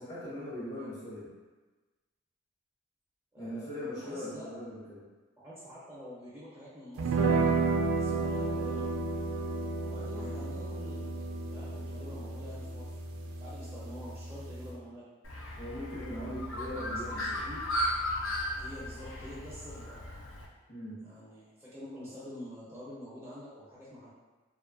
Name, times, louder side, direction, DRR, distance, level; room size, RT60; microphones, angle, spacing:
voice 1, 0.0-1.3 3.4-5.0 10.1-10.4 15.6-17.5 20.7-21.0, equal, 55° left, -13 dB, 0.9 m, -40 dB
voice 2, 3.3-4.5 5.4-7.5 7.9-8.9 9.8-11.0 11.4-13.0 13.4-15.0 17.1-17.6 18.6-20.0 21.0-24.1, equal, 15° right, -10 dB, 0.5 m, -47 dB
sound 1, 7.0-14.7, right 3 dB, 80° right, 0.3 m, -32 dB
Bird, 15.2-20.5, left 1 dB, 75° left, 0.4 m, -35 dB
2.5 x 2.3 x 2.4 m, 1.3 s
head